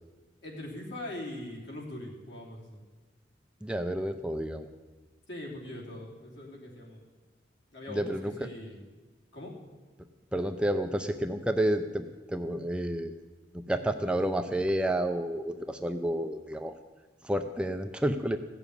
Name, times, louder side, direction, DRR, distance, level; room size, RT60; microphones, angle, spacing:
voice 1, 0.4-2.8 5.3-7.0 7.7-8.8 9.3-9.5, left 1 dB, 65° left, -2 dB, 3.3 m, -41 dB
voice 2, 3.6-4.7 7.9-8.5 10.3-13.2 13.5-16.7 17.2-18.4, right 1 dB, 5° right, 6 dB, 0.5 m, -30 dB
16.0 x 7.1 x 9.7 m, 1.3 s
head